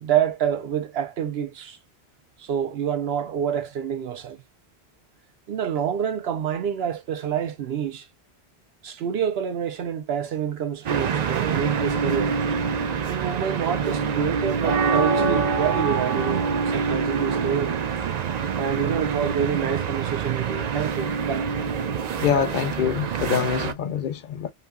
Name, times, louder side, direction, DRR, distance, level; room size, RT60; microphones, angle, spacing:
voice 1, 0.0-1.8 2.4-4.4 5.5-8.1 8.8-12.4 13.1-17.8 18.6-21.5, right 8 dB, 75° right, 0.9 m, -27 dB
sound 1, 10.9-23.7, right 6 dB, 55° right, 0.5 m, -25 dB
voice 2, 22.2-24.5, left 8 dB, 55° left, 0.7 m, -25 dB
2.9 x 2.6 x 2.2 m
omnidirectional pair, 1.1 m